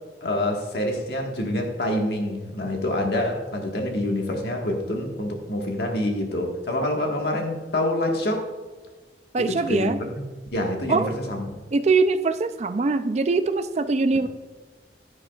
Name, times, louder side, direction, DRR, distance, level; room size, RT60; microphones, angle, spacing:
voice 1, 0.2-8.5 9.4-10.2 10.5-11.4, left 1 dB, 60° left, 1 dB, 1.5 m, -26 dB
voice 2, 9.3-10.0 10.9-11.1 11.7-14.3, right 3 dB, 35° right, 10 dB, 0.4 m, -22 dB
10.0 x 9.6 x 2.3 m, 1.3 s
head